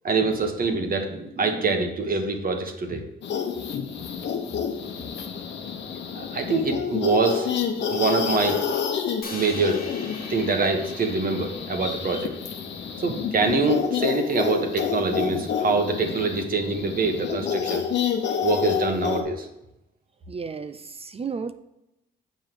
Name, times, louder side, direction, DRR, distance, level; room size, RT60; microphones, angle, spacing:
voice 1, 0.0-3.0 6.1-7.5 7.9-8.7 9.3-9.8 10.3-12.3 13.0-17.8 18.4-19.5, right 3 dB, 45° right, 4 dB, 1.4 m, -25 dB
sound 1, 3.2-19.2, left 7 dB, 65° left, 1.1 m, -29 dB
Crash cymbal, 9.2-13.4, left 4 dB, 45° left, 1.4 m, -42 dB
voice 2, 20.3-21.5, right 5 dB, 30° right, 11 dB, 0.5 m, -33 dB
7.2 x 5.3 x 6.1 m, 0.89 s
cardioid pair, 90°, 20 cm